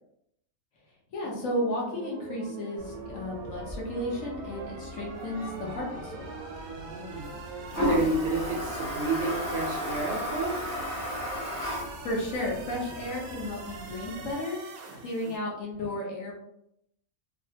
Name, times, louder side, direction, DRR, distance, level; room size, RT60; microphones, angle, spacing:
voice 1, 1.1-6.3 12.0-14.6 14.9-16.5, left 1 dB, 65° left, -3 dB, 1.1 m, -33 dB
sound 1, 1.2-15.4, right 4 dB, 90° right, 1.1 m, -43 dB
Toilet flush, 2.8-14.3, equal, 15° left, 0.6 m, -36 dB
voice 2, 6.7-10.6 15.2-15.3, right 3 dB, 65° right, 0 dB, 0.8 m, -31 dB
3.3 x 2.0 x 2.7 m, 0.76 s
omnidirectional pair, 1.5 m